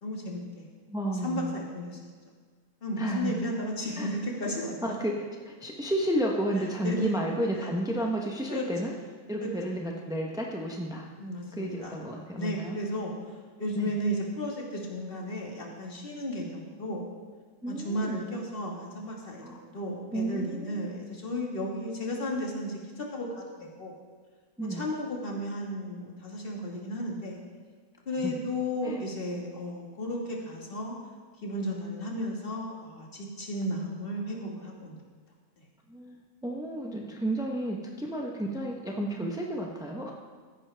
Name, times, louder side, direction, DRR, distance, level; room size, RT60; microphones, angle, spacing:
voice 1, 0.0-0.7 1.2-2.0 2.8-4.8 6.8-7.2 8.5-8.6 9.4-9.5 11.2-12.0 12.3-17.1 17.7-23.9 24.7-27.4 28.1-31.0 31.4-35.0, equal, 35° left, -1 dB, 1.8 m, -34 dB
voice 2, 0.9-1.5 3.0-3.4 4.0-4.1 4.8-8.9 9.3-11.1 11.5-12.8 13.7-13.9 17.6-18.2 19.4-19.6 20.1-20.9 24.6-24.8 28.2-28.4 28.8-29.0 35.9-40.1, right 1 dB, 5° right, 0 dB, 0.4 m, -32 dB
14.5 x 9.8 x 3.4 m, 1.5 s
omnidirectional pair, 1.7 m